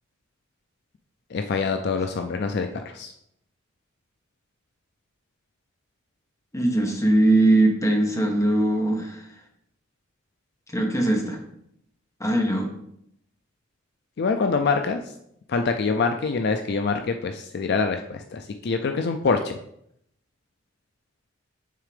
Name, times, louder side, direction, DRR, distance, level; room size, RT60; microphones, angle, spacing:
voice 1, 1.3-3.1 14.2-15.0 15.5-19.6, left 4 dB, 55° left, 6 dB, 0.4 m, -25 dB
voice 2, 6.5-9.2 10.7-11.4 12.2-12.7, right 1 dB, 15° left, 1 dB, 1.1 m, -21 dB
9.2 x 3.7 x 3.4 m, 0.74 s
head